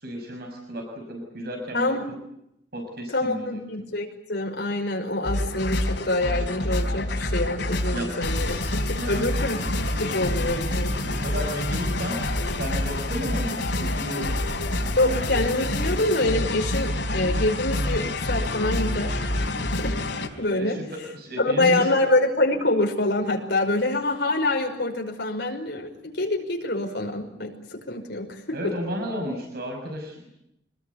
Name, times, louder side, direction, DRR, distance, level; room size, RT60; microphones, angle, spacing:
voice 1, 0.0-1.9 2.7-3.6 7.9-9.3 11.0-12.2 12.6-14.5 14.9-15.2 20.6-21.9 28.5-30.3, equal, 60° right, 3 dB, 6.1 m, -33 dB
voice 2, 1.7-2.0 3.1-9.6 10.0-10.9 15.0-19.9 20.4-21.1 21.4-28.7, left 2 dB, 65° left, 3 dB, 5.6 m, -26 dB
sound 1, 5.2-20.3, left 1 dB, 90° left, 4.4 m, -27 dB
25.5 x 21.0 x 9.7 m, 0.80 s
head